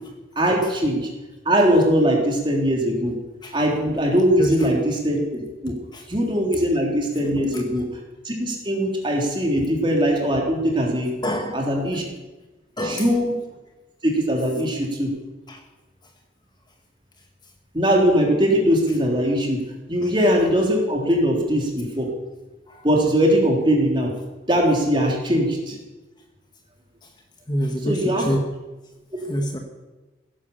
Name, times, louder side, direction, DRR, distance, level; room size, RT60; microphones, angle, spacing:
voice 1, 0.3-1.1 1.4-3.2 3.5-5.8 6.1-7.9 8.2-11.1 11.5-12.0 12.8-13.3 14.0-15.1 17.7-19.6 19.9-22.1 22.8-24.1 24.5-25.8 27.8-28.3, equal, 25° right, 0 dB, 3.2 m, -21 dB
voice 2, 4.4-4.8 5.9-6.0 7.5-7.6 11.2-12.1 12.8-13.2 15.5-15.6 20.0-20.1 22.7-22.8 27.0-27.1 27.5-28.4 29.3-29.6, equal, 25° left, 3 dB, 1.4 m, -27 dB
16.5 x 11.0 x 7.1 m, 1.2 s
head